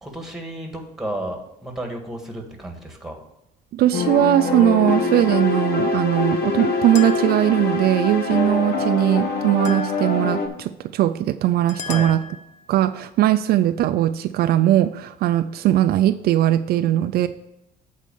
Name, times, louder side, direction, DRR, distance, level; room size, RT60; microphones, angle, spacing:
voice 1, 0.0-3.2 11.8-12.1, right 1 dB, ahead, 2 dB, 1.8 m, -32 dB
voice 2, 3.7-12.2 12.7-17.3, right 13 dB, 65° right, 10 dB, 0.4 m, -19 dB
sound 1, 3.9-10.5, left 4 dB, 65° left, 1.3 m, -24 dB
sound 2, 6.9-7.7 9.6-10.4 11.7-12.7, left 5 dB, 45° left, 0.8 m, -35 dB
8.3 x 4.2 x 7.0 m, 0.89 s
cardioid pair, 110°, 17 cm